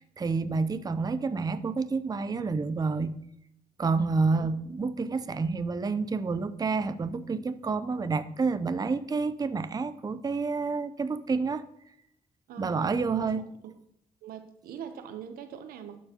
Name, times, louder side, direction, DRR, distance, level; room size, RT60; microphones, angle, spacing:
voice 1, 0.0-3.1 3.8-11.6 12.6-13.4, right 4 dB, 25° right, 12 dB, 0.5 m, -29 dB
voice 2, 12.5-13.3 14.2-16.0, right 8 dB, 85° right, 9 dB, 0.7 m, -42 dB
12.0 x 4.6 x 2.9 m, 0.77 s
supercardioid pair, 60°, 15 cm